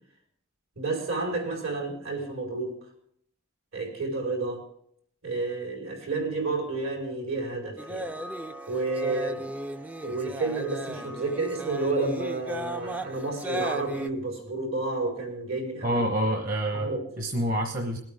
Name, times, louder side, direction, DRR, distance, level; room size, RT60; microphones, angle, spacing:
voice 1, 0.7-2.8 3.7-4.6 5.2-8.1 8.7-9.4 10.0-16.0 16.7-17.0, right 3 dB, 75° right, -1 dB, 4.8 m, -30 dB
sound 1, 7.8-14.1, right 1 dB, 5° right, 0.4 m, -36 dB
voice 2, 15.8-16.9 17.2-18.0, right 1 dB, 40° right, 3 dB, 1.1 m, -27 dB
21.0 x 8.7 x 3.7 m, 0.68 s
head